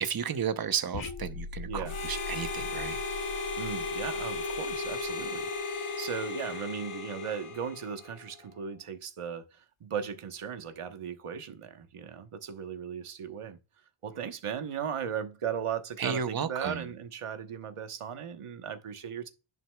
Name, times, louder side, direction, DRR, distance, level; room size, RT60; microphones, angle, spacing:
voice 1, 0.0-3.0 16.0-16.8, right 7 dB, 45° right, 0.8 m, -33 dB
sound 1, 0.9-5.6, left 4 dB, 65° left, 0.9 m, -42 dB
Harmonica, 1.8-8.2, left 4 dB, 90° left, 1.5 m, -35 dB
voice 2, 3.6-13.6 14.0-19.3, right 7 dB, 90° right, 1.2 m, -37 dB
10.5 x 5.9 x 2.3 m
wide cardioid pair, 100°, 50 cm